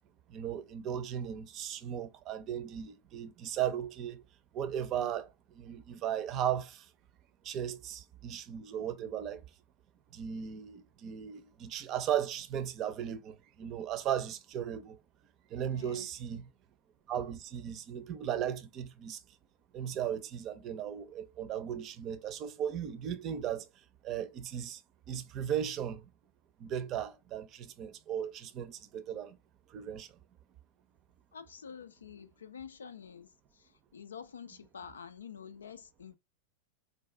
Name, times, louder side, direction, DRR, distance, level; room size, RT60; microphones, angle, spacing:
voice 1, 0.3-4.2 4.5-6.9 7.4-9.4 10.1-15.0 15.5-16.5 17.1-19.2 19.7-23.7 24.0-24.8 25.1-26.0 26.6-29.4 29.7-30.1, right 9 dB, 35° right, 0.6 m, -36 dB
voice 2, 15.7-16.4 31.3-36.2, left 7 dB, 70° left, 0.4 m, -48 dB
3.9 x 2.4 x 3.2 m
figure-of-eight pair, 90°, 0 cm